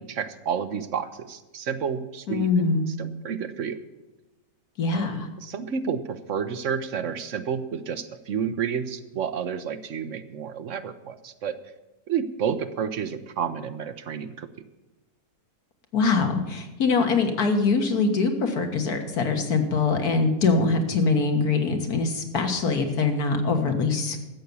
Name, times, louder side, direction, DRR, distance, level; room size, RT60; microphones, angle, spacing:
voice 1, 0.0-3.8 4.9-5.1 5.4-11.6 12.1-14.5, right 7 dB, 60° right, 10 dB, 1.0 m, -30 dB
voice 2, 2.3-2.9 4.8-5.3 15.9-24.2, left 4 dB, 85° left, 5 dB, 2.0 m, -23 dB
13.5 x 8.1 x 7.1 m, 1.1 s
omnidirectional pair, 1.6 m